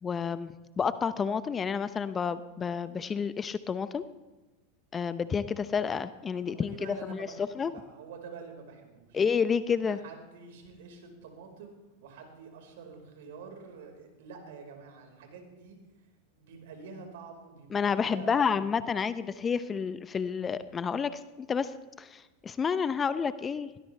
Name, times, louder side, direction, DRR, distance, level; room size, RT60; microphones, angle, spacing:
voice 1, 0.0-4.0 4.9-7.3 7.5-7.7 9.1-10.0 17.7-23.7, left 6 dB, 25° left, 13 dB, 0.8 m, -30 dB
voice 2, 6.3-9.2 9.7-11.7 12.0-15.8 16.3-18.6, right 5 dB, 65° right, 3 dB, 4.9 m, -47 dB
21.5 x 18.5 x 3.4 m, 1.1 s
hypercardioid pair, 90°, 0 cm